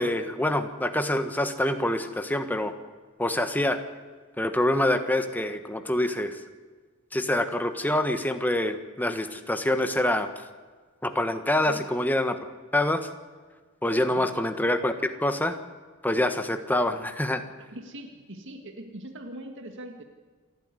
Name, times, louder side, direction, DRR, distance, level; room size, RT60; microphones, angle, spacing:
voice 1, 0.0-2.7 3.2-3.8 4.4-6.4 7.1-10.3 11.0-12.4 12.7-13.0 13.8-15.6 16.0-17.4, left 1 dB, 10° left, 7 dB, 1.4 m, -26 dB
voice 2, 17.6-20.0, right 1 dB, 60° right, 4 dB, 1.9 m, -41 dB
28.0 x 11.5 x 9.7 m, 1.5 s
head